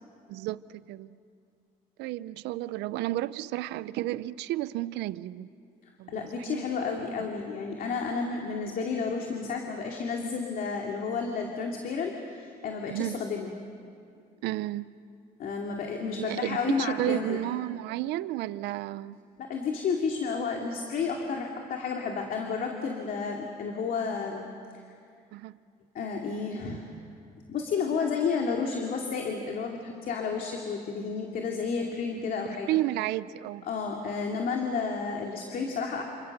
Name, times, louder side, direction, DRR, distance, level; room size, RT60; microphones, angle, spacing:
voice 1, 0.3-1.2 2.0-5.5 6.0-6.8 12.9-13.2 14.4-14.9 16.1-19.2 25.3-25.6 32.5-33.7, right 15 dB, 85° right, 17 dB, 0.6 m, -32 dB
voice 2, 6.1-13.5 15.4-17.4 19.4-24.5 25.9-26.9 27.5-32.7 33.6-36.0, left 5 dB, 60° left, 1 dB, 2.6 m, -31 dB
28.5 x 26.5 x 6.8 m, 2.4 s
cardioid pair, 110°, 17 cm